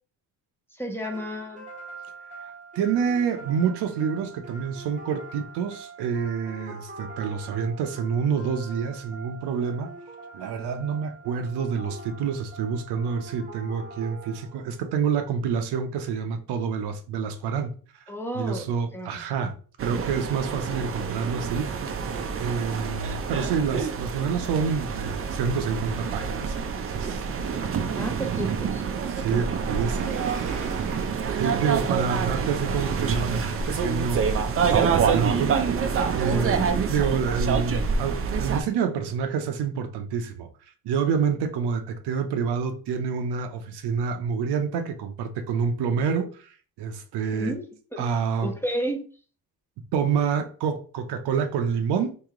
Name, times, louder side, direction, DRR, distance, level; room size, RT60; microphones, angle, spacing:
voice 1, 0.7-1.7 18.1-18.7 18.9-19.2 27.9-28.8 36.3-36.7 47.3-47.7 47.9-48.1 48.4-49.1, equal, 5° left, 0.6 m, -32 dB
sound 1, 1.0-14.9, right 3 dB, 20° right, 0.9 m, -44 dB
voice 2, 2.8-9.9 10.3-17.7 18.3-19.5 19.8-21.7 22.3-27.2 29.1-30.2 31.4-35.8 36.1-36.6 36.9-40.5 40.8-46.5 46.8-47.5 48.0-48.5 49.9-52.1, right 6 dB, 80° right, 0.7 m, -27 dB
sound 2, 19.8-38.6, right 6 dB, 35° right, 0.5 m, -27 dB
Sliding door, 29.6-31.5 32.4-34.6, right 4 dB, 50° right, 0.9 m, -45 dB
3.1 x 2.7 x 3.6 m
cardioid pair, 115°, 39 cm